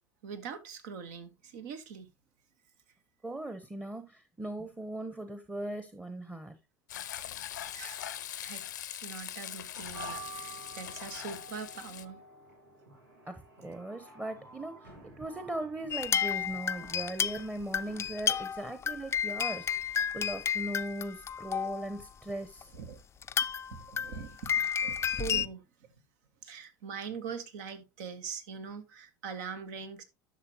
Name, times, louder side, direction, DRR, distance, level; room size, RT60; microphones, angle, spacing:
voice 1, 0.2-2.1 7.7-8.1 8.4-8.6 8.9-12.2 22.7-23.0 23.8-25.9 26.4-30.0, right 6 dB, 65° right, 1.4 m, -42 dB
voice 2, 3.2-6.6 13.2-22.7, right 1 dB, 10° right, 1.0 m, -39 dB
Frying (food), 6.9-12.1, left 11 dB, 75° left, 0.6 m, -41 dB
sound 1, 9.9-18.1, right 3 dB, 85° right, 2.1 m, -50 dB
sound 2, 15.9-21.9 22.6-22.7 23.2-25.5, left 8 dB, 25° left, 0.4 m, -32 dB
11.0 x 6.5 x 2.9 m
figure-of-eight pair, 70°, 10 cm